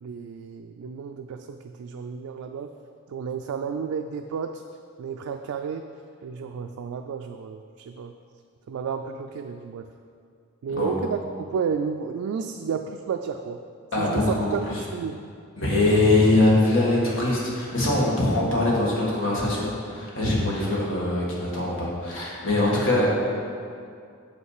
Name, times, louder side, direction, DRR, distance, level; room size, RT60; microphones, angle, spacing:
voice 1, 0.0-2.7 3.1-4.6 5.0-5.8 6.2-8.1 8.7-9.9 10.6-11.2 11.5-13.6 14.0-15.1 22.6-22.7, right 6 dB, 85° right, 5 dB, 0.3 m, -31 dB
voice 2, 13.9-14.8 15.6-23.1, left 2 dB, 65° left, -4 dB, 1.6 m, -22 dB
6.5 x 5.4 x 4.8 m, 2.3 s
head